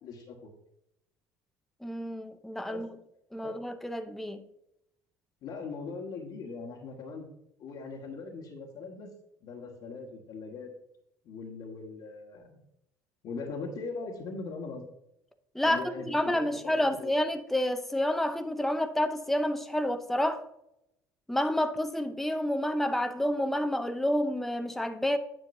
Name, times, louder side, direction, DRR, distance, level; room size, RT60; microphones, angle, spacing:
voice 1, 0.0-0.5 2.7-2.8 3.4-3.6 5.4-7.2 7.6-9.1 9.4-10.7 11.2-12.6 13.2-14.8 15.6-17.1, left 4 dB, 65° left, 1.5 m, -40 dB
voice 2, 1.8-2.9 3.3-4.4 15.5-20.4 21.3-25.2, left 1 dB, 5° left, 0.7 m, -29 dB
9.8 x 6.3 x 2.7 m
supercardioid pair, 90°, 9 cm